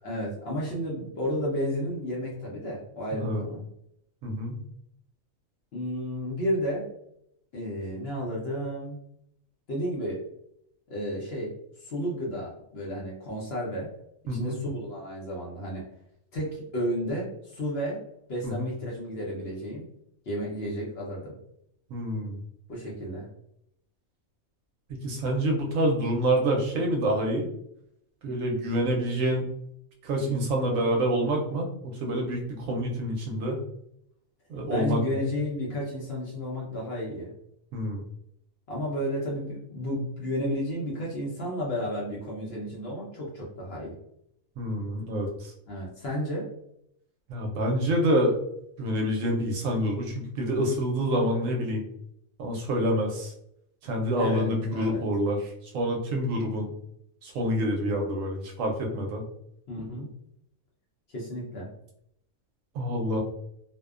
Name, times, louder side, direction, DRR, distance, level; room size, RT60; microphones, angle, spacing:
voice 1, 0.0-3.6 5.7-6.9 7.5-9.0 9.7-10.2 10.9-11.5 11.8-13.9 14.3-15.8 16.3-18.0 18.3-19.8 20.3-21.3 22.7-23.3 34.7-37.3 38.7-43.9 45.7-46.5 54.1-55.0 59.7-60.1 61.1-61.7, equal, 55° left, -4 dB, 0.8 m, -32 dB
voice 2, 3.1-3.4 4.2-4.6 14.3-14.6 18.4-18.7 21.9-22.4 25.0-27.5 28.2-29.5 30.0-33.6 34.5-35.0 37.7-38.0 44.6-45.5 47.3-48.4 48.8-51.8 52.4-53.3 53.8-56.7 57.2-59.2 62.7-63.2, equal, 75° right, 1 dB, 0.9 m, -27 dB
2.6 x 2.1 x 2.3 m, 0.74 s
omnidirectional pair, 1.5 m